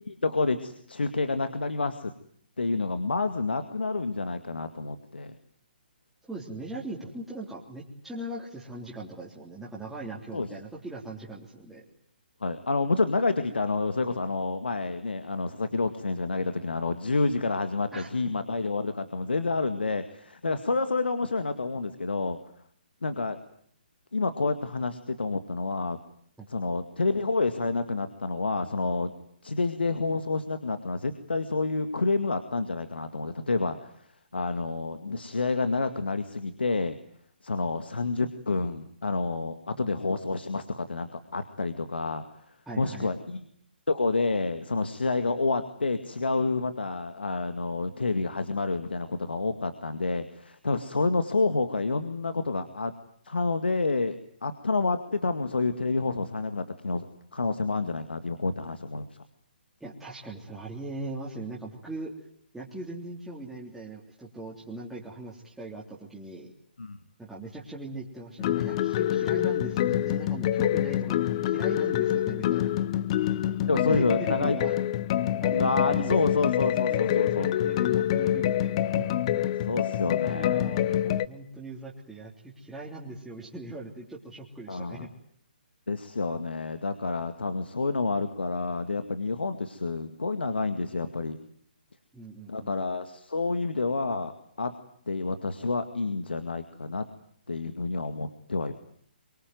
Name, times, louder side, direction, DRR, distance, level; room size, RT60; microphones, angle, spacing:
voice 1, 0.0-2.1 2.6-5.4 10.3-10.5 12.4-22.4 23.0-23.4 24.1-26.0 26.5-29.1 29.4-34.1 34.3-37.0 37.4-43.4 43.9-52.9 53.2-54.2 54.4-57.1 57.3-59.1 66.8-67.0 73.7-74.6 75.5-77.5 79.7-80.7 84.7-85.1 85.9-91.4 92.5-94.3 94.6-94.7 95.1-97.1 97.5-98.7, left 3 dB, 75° left, 9 dB, 2.1 m, -29 dB
voice 2, 6.3-11.8 17.9-18.1 26.4-26.5 42.7-43.1 59.8-62.1 62.5-66.5 67.2-72.7 73.7-74.7 75.4-76.3 76.9-79.1 80.2-85.1 92.1-92.7, right 2 dB, 5° right, -6 dB, 3.5 m, -40 dB
sound 1, 68.4-81.3, left 12 dB, 35° left, 1.1 m, -26 dB
24.0 x 24.0 x 9.5 m, 0.64 s
figure-of-eight pair, 135°, 6 cm